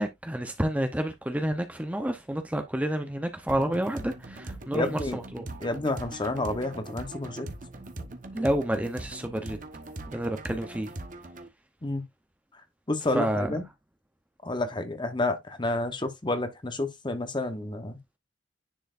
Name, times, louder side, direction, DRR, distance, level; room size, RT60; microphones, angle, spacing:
voice 1, 0.0-5.5 8.3-9.6 10.1-10.9 13.1-13.6, right 1 dB, 10° right, 0.7 m, -29 dB
sound 1, 3.5-11.5, right 2 dB, 45° right, 1.1 m, -41 dB
voice 2, 4.7-5.2 5.6-7.5 11.8-12.0 12.9-13.6 14.4-18.0, left 2 dB, 25° left, 1.0 m, -30 dB
10.0 x 4.4 x 2.5 m
head